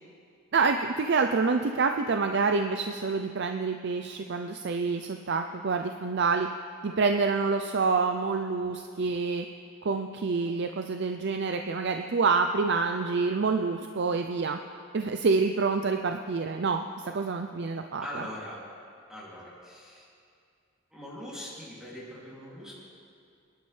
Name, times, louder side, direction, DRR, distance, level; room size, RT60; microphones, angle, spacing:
voice 1, 0.5-6.5 6.8-9.5 9.8-14.6 14.9-18.2, right 4 dB, 55° right, 5 dB, 0.5 m, -27 dB
voice 2, 18.0-18.6 19.1-20.0 20.9-22.7, left 1 dB, 5° right, -8 dB, 2.8 m, -41 dB
25.0 x 11.5 x 3.3 m, 2.4 s
head